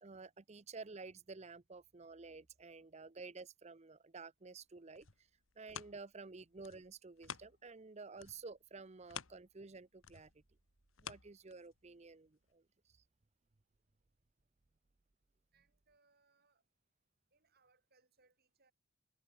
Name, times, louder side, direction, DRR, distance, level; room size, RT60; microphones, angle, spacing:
voice 1, 0.0-5.3 5.6-10.4 11.0-12.6, right 4 dB, 30° right, 0.6 m, -52 dB
sound 1, 4.7-7.9 8.2-12.0 12.5-12.6, left 7 dB, 65° left, 1.8 m, -52 dB
voice 2, 15.5-16.6 17.3-18.7, right 4 dB, 45° right, 6.7 m, -74 dB
head